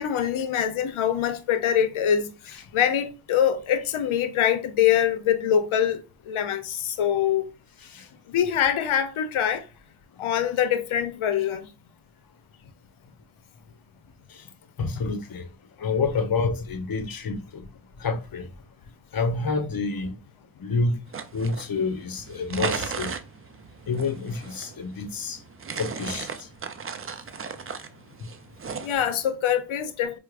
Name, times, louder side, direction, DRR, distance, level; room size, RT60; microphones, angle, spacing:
voice 1, 0.0-6.0 6.2-7.5 8.3-9.7 10.2-11.7 28.8-30.2, left 9 dB, 85° left, 0.6 m, -24 dB
voice 2, 14.8-15.5 15.8-17.7 18.0-18.5 19.1-20.1 20.6-21.0 21.3-23.1 23.9-25.4 25.8-26.3 28.2-28.3, left 4 dB, 50° left, 0.7 m, -28 dB
sound 1, 21.1-29.2, right 5 dB, 30° right, 0.4 m, -36 dB
4.5 x 2.1 x 2.4 m
cardioid pair, 55°, 47 cm